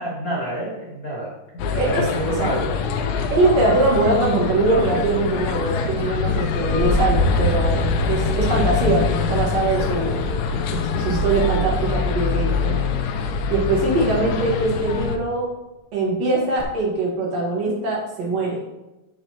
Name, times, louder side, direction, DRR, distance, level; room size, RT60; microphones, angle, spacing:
voice 1, 0.0-1.3 1.7-2.6 8.5-8.7, right 1 dB, 70° left, -5 dB, 0.8 m, -28 dB
sound 1, 1.6-15.2, left 5 dB, 85° left, 2.3 m, -24 dB
voice 2, 1.7-2.1 2.4-2.5 3.3-10.3 10.7-12.8 13.5-15.5 15.9-18.6, right 2 dB, 55° right, -2 dB, 2.3 m, -22 dB
sound 2, 6.0-11.9 13.5-14.0 16.6-16.7, left 1 dB, 10° right, 1.1 m, -26 dB
7.8 x 6.5 x 2.8 m, 0.97 s
omnidirectional pair, 3.9 m